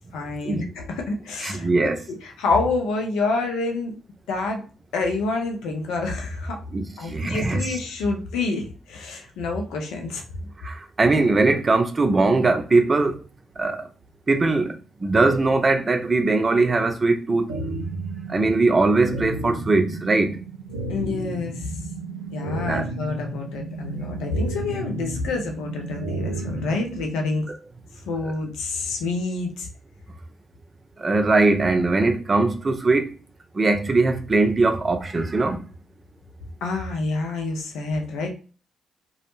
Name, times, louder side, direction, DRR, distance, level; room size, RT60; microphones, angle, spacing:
voice 1, 0.1-1.9 2.2-3.9 4.3-4.6 4.9-6.6 7.0-10.2 20.9-21.7 22.3-27.5 28.1-29.7 36.6-38.3, left 3 dB, 70° left, 0.6 m, -27 dB
voice 2, 1.4-2.0 6.7-7.8 10.6-13.2 13.6-13.9 14.3-17.5 18.3-20.4 22.7-22.9 31.0-33.1 33.5-35.7, right 3 dB, 35° right, 0.5 m, -21 dB
sound 1, 17.5-27.5, right 2 dB, 90° right, 0.4 m, -33 dB
2.3 x 2.0 x 3.0 m
hypercardioid pair, 40°, 0 cm